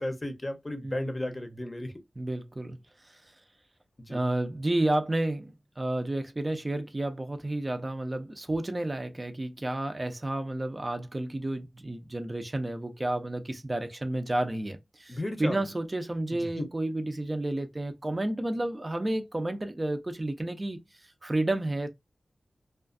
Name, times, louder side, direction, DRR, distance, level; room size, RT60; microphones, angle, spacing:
voice 1, 0.0-1.9 4.0-4.2 15.1-15.6 16.4-16.7, left 1 dB, 30° left, 0.7 m, -34 dB
voice 2, 0.8-1.2 2.2-2.8 3.0-3.2 4.1-21.9, right 1 dB, 30° right, 0.5 m, -31 dB
2.4 x 2.3 x 2.4 m
wide cardioid pair, 70°, 0 cm